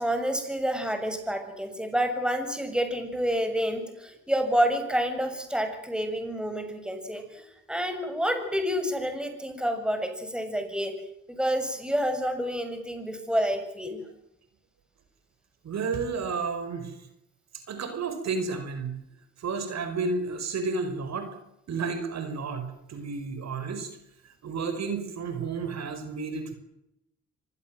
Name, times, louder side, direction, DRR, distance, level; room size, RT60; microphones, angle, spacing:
voice 1, 0.0-10.9 11.3-14.0, equal, 5° right, 7 dB, 6.7 m, -28 dB
voice 2, 15.6-16.9 17.7-19.0 19.4-21.4 21.7-23.9 24.2-26.5, right 4 dB, 60° right, 8 dB, 5.4 m, -31 dB
26.0 x 20.0 x 7.7 m, 0.85 s
cardioid pair, 90°, 30 cm